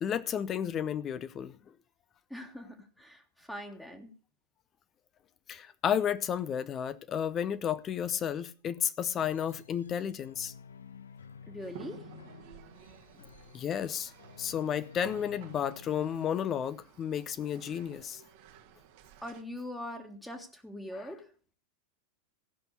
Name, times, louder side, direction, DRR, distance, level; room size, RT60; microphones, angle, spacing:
voice 1, 0.0-1.6 5.5-10.5 13.5-14.1 14.4-18.2, left 9 dB, 30° left, 0.7 m, -32 dB
voice 2, 2.3-4.1 11.5-12.0 19.2-21.3, left 1 dB, 5° left, 1.7 m, -42 dB
sound 1, 9.2-16.8, left 6 dB, 70° left, 0.8 m, -52 dB
sound 2, 11.6-19.4, right 9 dB, 50° right, 1.4 m, -53 dB
16.0 x 6.1 x 6.6 m
figure-of-eight pair, 90°, 0 cm